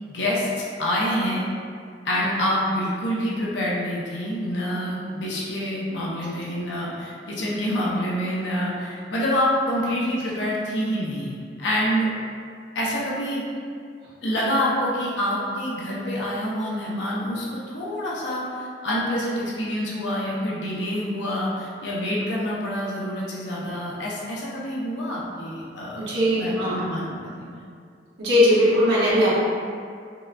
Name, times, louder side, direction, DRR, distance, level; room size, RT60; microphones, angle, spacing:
voice 1, 0.1-1.5 2.0-12.1 12.7-13.5 14.2-27.6, equal, 80° left, -5 dB, 0.7 m, -27 dB
voice 2, 26.1-26.8 28.2-29.4, left 1 dB, 85° right, -10 dB, 1.3 m, -19 dB
5.6 x 2.2 x 2.5 m, 2.2 s
head